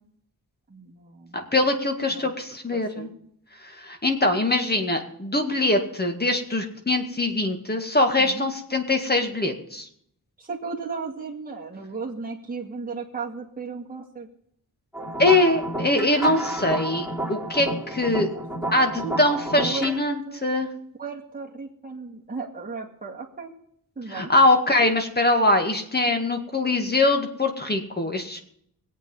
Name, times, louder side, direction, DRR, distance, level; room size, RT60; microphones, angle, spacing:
voice 1, 0.7-1.5 2.1-2.3 2.7-3.1 8.2-8.5 10.4-14.3 18.3-19.2 19.6-20.0 20.3-20.5 21.0-23.5 24.0-24.3, right 4 dB, 25° right, -3 dB, 2.2 m, -35 dB
voice 2, 1.3-3.1 3.6-9.9 15.2-18.3 18.7-20.7 24.1-28.4, left 2 dB, 25° left, 5 dB, 2.0 m, -23 dB
sound 1, 14.9-20.0, right 1 dB, ahead, 3.5 m, -31 dB
21.5 x 8.4 x 5.6 m, 0.70 s
wide cardioid pair, 120°, 37 cm